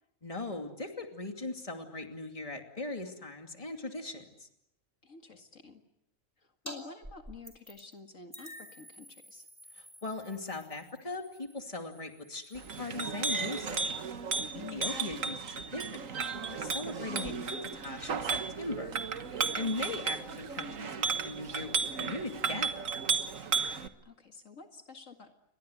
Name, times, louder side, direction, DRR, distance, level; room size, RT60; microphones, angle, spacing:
voice 1, 0.2-4.5 9.8-13.9 14.7-19.0 19.3-22.8, left 2 dB, 25° left, 4 dB, 2.7 m, -39 dB
voice 2, 5.0-5.8 6.4-9.5 14.5-15.0 19.6-19.9 24.0-25.3, left 5 dB, 70° left, 5 dB, 2.4 m, -50 dB
sound 1, 6.7-6.8 7.0-7.9 8.3-13.4, equal, 10° right, 5.0 m, -50 dB
Chink clink, 12.5-23.9, right 5 dB, 75° right, 1.7 m, -34 dB
29.5 x 23.5 x 8.1 m, 0.81 s
omnidirectional pair, 1.4 m